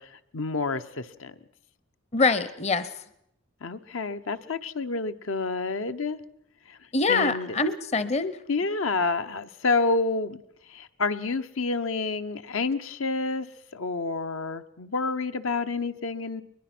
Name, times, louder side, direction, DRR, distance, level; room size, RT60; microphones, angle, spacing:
voice 1, 0.0-1.3 3.6-6.2 6.7-6.8 7.1-7.6 8.5-10.4 10.7-13.5 13.7-16.4, left 3 dB, 75° left, 10 dB, 0.9 m, -29 dB
voice 2, 2.1-2.9 6.9-8.4, left 3 dB, 30° left, 14 dB, 0.7 m, -24 dB
21.5 x 21.5 x 6.1 m, 0.76 s
head